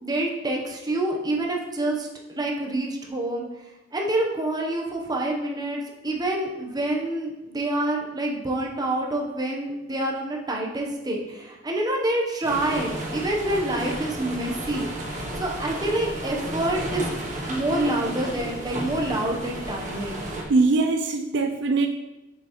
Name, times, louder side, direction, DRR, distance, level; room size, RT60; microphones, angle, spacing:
voice 1, 0.0-3.4 3.9-14.9 15.4-17.1 17.5-20.2, right 1 dB, 20° right, 0 dB, 0.9 m, -27 dB
sound 1, 12.4-20.4, right 1 dB, 40° right, 1.5 m, -33 dB
voice 2, 20.5-21.9, right 3 dB, 65° right, 4 dB, 0.4 m, -21 dB
6.8 x 5.5 x 3.0 m, 1.0 s
head